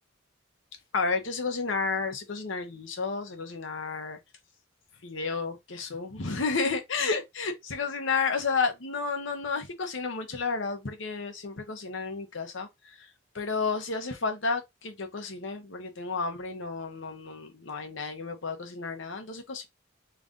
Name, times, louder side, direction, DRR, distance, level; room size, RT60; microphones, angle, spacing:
voice 1, 0.9-4.2 5.0-12.7 13.3-19.7, left 4 dB, 70° left, 0.9 m, -31 dB
3.2 x 2.5 x 3.5 m
head